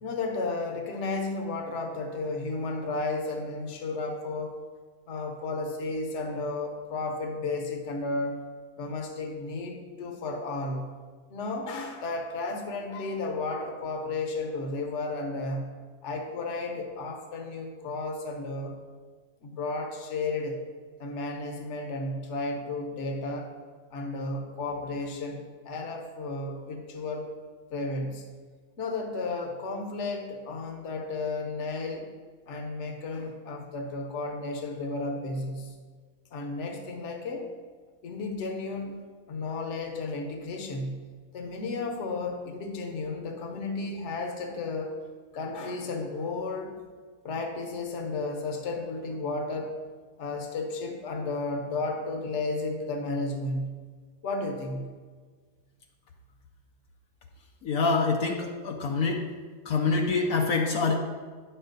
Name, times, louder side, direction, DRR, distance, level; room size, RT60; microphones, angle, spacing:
voice 1, 0.0-4.6 5.1-8.4 8.8-11.0 11.3-15.8 16.0-18.8 19.4-20.6 21.0-23.5 23.9-27.3 27.7-28.3 28.8-32.1 32.5-35.7 36.3-37.5 38.0-39.0 39.3-41.1 41.3-45.0 45.3-46.8 47.2-49.8 50.2-53.8 54.2-54.9, left 3 dB, 55° left, 3 dB, 1.2 m, -33 dB
voice 2, 57.6-59.2 59.7-61.0, left 4 dB, 75° left, 1 dB, 1.2 m, -25 dB
9.6 x 6.6 x 3.9 m, 1.5 s
omnidirectional pair, 1.6 m